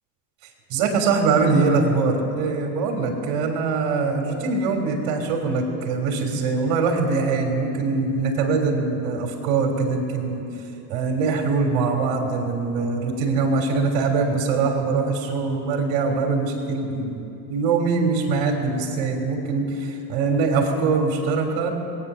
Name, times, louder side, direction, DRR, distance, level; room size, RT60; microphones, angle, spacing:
voice 1, 0.7-10.4 10.9-21.7, right 4 dB, 65° right, 3 dB, 3.4 m, -23 dB
21.0 x 9.5 x 6.9 m, 2.8 s
supercardioid pair, 85°, 48 cm